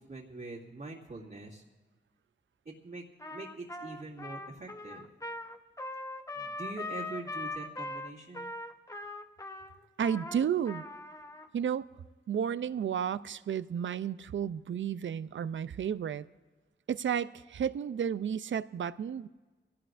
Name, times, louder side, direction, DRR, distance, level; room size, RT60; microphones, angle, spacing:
voice 1, 0.0-1.6 2.6-3.0 3.3-5.1 6.3-8.5, right 2 dB, 60° right, -8 dB, 2.3 m, -44 dB
Trumpet, 3.2-11.5, left 2 dB, 15° left, 0.9 m, -41 dB
voice 2, 10.0-10.8 11.5-11.9 12.3-16.3 16.9-19.3, right 8 dB, 85° right, 15 dB, 0.5 m, -32 dB
24.0 x 17.5 x 2.5 m, 1.3 s
wide cardioid pair, 80°, 19 cm